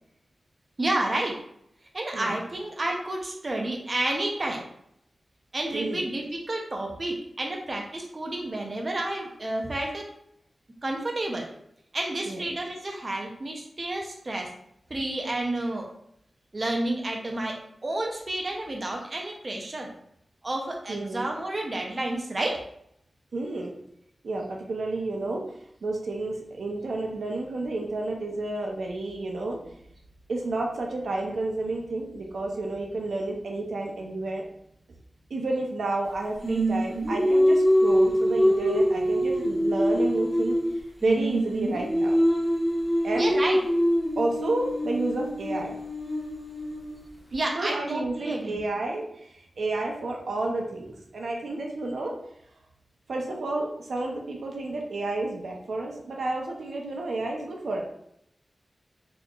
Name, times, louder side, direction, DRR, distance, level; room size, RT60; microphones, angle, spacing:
voice 1, 0.8-1.4 1.9-4.6 5.5-10.1 10.8-11.5 11.9-14.5 14.9-15.9 16.5-17.6 17.8-19.9 20.4-22.6 43.2-43.6 47.3-48.6, right 1 dB, 40° right, 1 dB, 0.6 m, -30 dB
voice 2, 5.7-6.0 12.3-12.4 20.9-21.3 23.3-23.7 24.2-25.4 25.8-29.6 30.3-34.4 35.3-40.6 41.0-42.2 43.0-43.3 44.2-45.8 47.3-52.1 53.1-57.8, right 2 dB, 90° right, 0 dB, 0.6 m, -30 dB
Singing, 36.4-40.7 41.0-47.0, equal, 5° right, 1.3 m, -24 dB
4.1 x 3.0 x 2.4 m, 0.73 s
wide cardioid pair, 95°, 0 cm